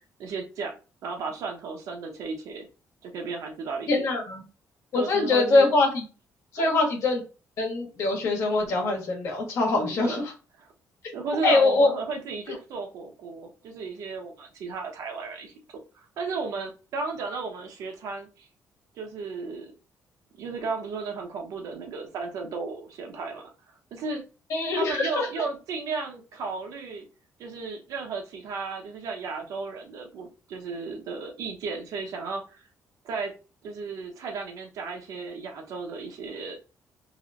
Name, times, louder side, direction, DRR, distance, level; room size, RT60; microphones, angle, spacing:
voice 1, 0.2-0.7 1.0-2.7 3.0-4.1 4.9-5.7 6.6-6.7 9.8-10.2 10.6-10.7 11.1-15.5 15.9-18.5 18.9-19.7 20.4-23.4 23.9-24.2 24.7-27.1 27.4-32.7 33.0-33.3 33.6-36.6, right 4 dB, 75° right, 3 dB, 0.9 m, -34 dB
voice 2, 3.9-4.4 4.9-6.0 6.5-7.2 7.6-10.2 11.4-11.9 24.5-25.3, left 3 dB, 60° left, 0 dB, 1.3 m, -23 dB
3.1 x 3.0 x 2.5 m, 0.33 s
cardioid pair, 155°, 6 cm